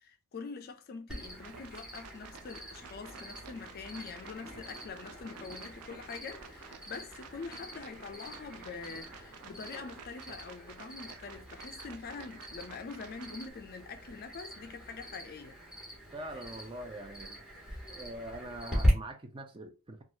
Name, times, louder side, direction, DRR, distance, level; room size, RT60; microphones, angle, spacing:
voice 1, 0.0-15.6, left 5 dB, 45° left, 0.4 m, -44 dB
Cricket, 1.1-18.9, equal, 5° right, 1.0 m, -41 dB
sound 1, 1.4-13.5, right 7 dB, 90° right, 0.4 m, -52 dB
sound 2, 2.3-10.0, left 1 dB, 25° left, 1.1 m, -56 dB
voice 2, 16.1-17.4 17.9-20.0, right 1 dB, 25° right, 0.5 m, -43 dB
3.0 x 2.3 x 2.6 m
head